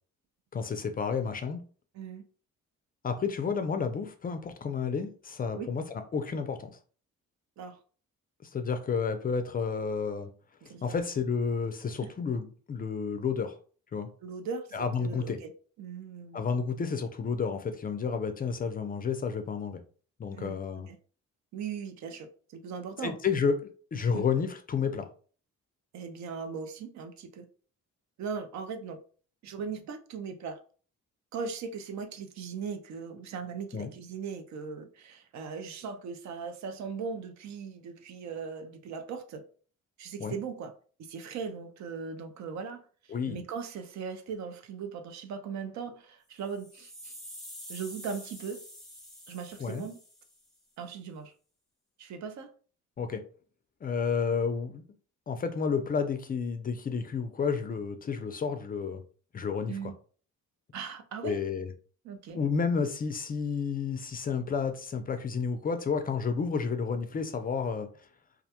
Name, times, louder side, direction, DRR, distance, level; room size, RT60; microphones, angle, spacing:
voice 1, 0.5-1.6 3.0-5.8 6.1-6.7 8.4-10.3 10.8-13.6 13.9-14.1 14.7-15.4 16.3-19.8 20.2-20.9 23.0-25.1 33.7-33.9 40.2-40.4 43.1-43.4 49.6-49.8 53.0-53.2 53.8-54.8 55.3-59.0 59.3-59.7 61.2-61.7 62.3-67.9, left 5 dB, 30° left, 0.4 m, -31 dB
voice 2, 10.6-11.0 12.0-12.1 14.2-15.5 15.8-16.4 20.3-20.6 20.9-21.0 21.5-23.2 24.1-24.2 25.9-27.5 28.2-29.0 29.4-30.6 31.3-39.5 40.0-40.7 41.0-47.2 47.7-48.6 49.3-50.0 50.8-51.3 52.0-52.5 59.7-59.9 60.7-61.4 62.0-62.4, right 6 dB, 65° right, 0.5 m, -39 dB
sound 1, 46.4-50.6, equal, ahead, 0.8 m, -47 dB
2.4 x 2.1 x 2.8 m
cardioid pair, 90°, 30 cm